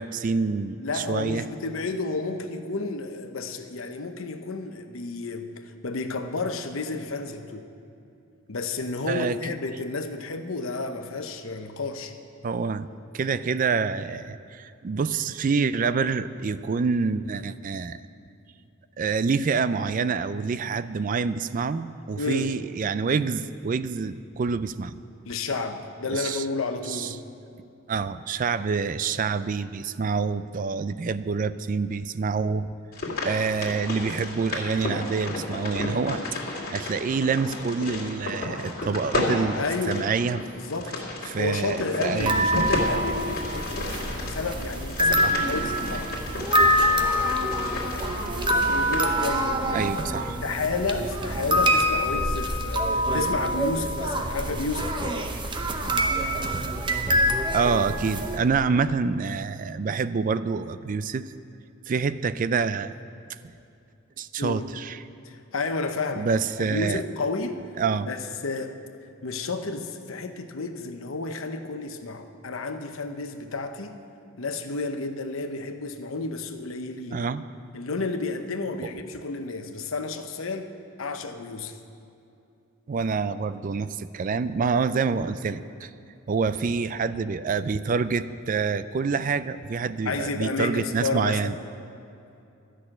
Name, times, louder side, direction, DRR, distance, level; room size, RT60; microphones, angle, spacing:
voice 1, 0.0-1.5 9.1-9.4 12.4-12.9 13.1-18.0 19.0-25.0 26.1-26.4 26.9-27.1 27.9-32.7 33.2-36.2 36.7-40.4 41.3-42.5 45.2-45.5 49.7-50.4 57.5-61.3 61.9-62.9 64.2-65.0 66.2-67.0 67.8-68.1 77.1-77.4 82.9-85.9 86.3-91.5, right 5 dB, 40° right, 14 dB, 0.3 m, -27 dB
voice 2, 0.8-7.7 8.5-12.1 22.2-22.5 25.3-27.2 39.5-40.1 40.6-41.0 41.4-43.9 44.2-46.2 48.7-49.9 50.4-55.3 64.4-64.7 65.2-66.3 66.6-67.6 68.1-68.8 69.2-74.0 74.4-77.2 77.7-81.8 90.0-91.5, left 3 dB, 75° left, 7 dB, 0.9 m, -31 dB
sound 1, 32.9-49.1, left 2 dB, 45° left, 2.3 m, -33 dB
sound 2, 42.2-58.4, equal, 25° right, 0.8 m, -25 dB
13.0 x 6.3 x 8.8 m, 2.7 s
head